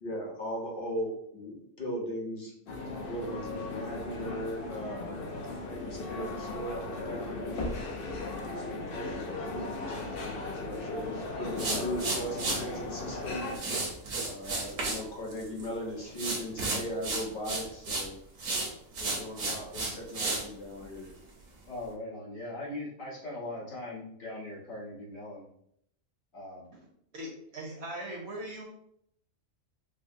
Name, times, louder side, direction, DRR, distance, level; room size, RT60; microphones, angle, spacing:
voice 1, 0.0-2.5 3.1-7.7 8.5-13.5 14.2-18.1 19.0-21.1, equal, 45° left, -1 dB, 1.0 m, -38 dB
sound 1, 2.7-13.6, left 2 dB, 60° left, 0.6 m, -37 dB
sound 2, 11.6-12.6 13.5-15.0 15.3-15.7 16.2-18.1 18.4-20.4, right 3 dB, 80° right, 1.3 m, -32 dB
voice 2, 21.7-25.4 26.3-26.7, left 1 dB, 75° left, -7 dB, 1.7 m, -40 dB
voice 3, 27.1-28.7, right 1 dB, 60° right, 0 dB, 0.8 m, -40 dB
4.8 x 2.0 x 2.6 m, 0.71 s
omnidirectional pair, 1.4 m